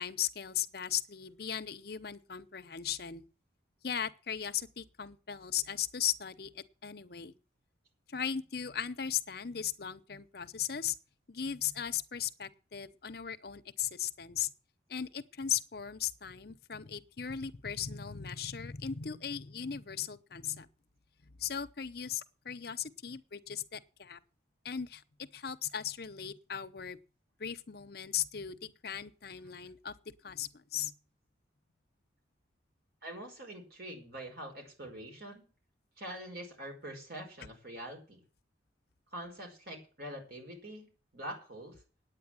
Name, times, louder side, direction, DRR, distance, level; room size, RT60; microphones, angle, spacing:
voice 1, 0.0-3.2 3.8-7.3 8.1-11.0 11.3-14.5 14.9-20.7 21.4-24.2 24.6-27.0 27.4-29.9 30.2-30.9, left 9 dB, 55° left, 0.8 m, -37 dB
voice 2, 33.0-35.5 36.0-38.2 39.1-40.8 41.1-41.8, right 1 dB, 55° right, 5.2 m, -44 dB
9.6 x 9.0 x 8.8 m
head